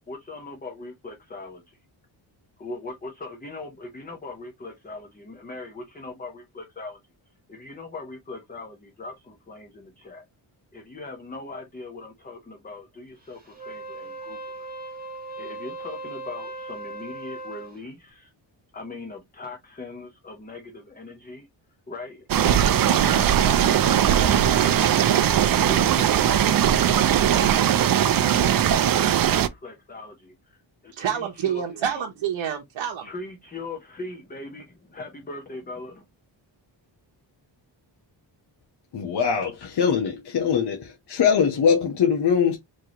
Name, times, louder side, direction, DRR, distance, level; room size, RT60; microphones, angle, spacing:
voice 1, 0.1-1.8 2.6-7.0 7.5-10.2 10.7-14.7 15.4-18.3 18.7-21.5 21.9-25.1 25.6-28.7 28.9-32.0 33.0-36.0, left 3 dB, 20° left, 0.7 m, -40 dB
Wind instrument woodwind instrument, 13.5-17.8, right 2 dB, 20° right, 1.2 m, -38 dB
sound 1, 22.3-29.5, right 10 dB, 50° right, 0.5 m, -19 dB
voice 2, 30.9-33.1, right 9 dB, 85° right, 1.0 m, -28 dB
voice 3, 38.9-42.6, left 7 dB, 60° left, 1.0 m, -22 dB
4.4 x 3.1 x 2.8 m
wide cardioid pair, 170°, 46 cm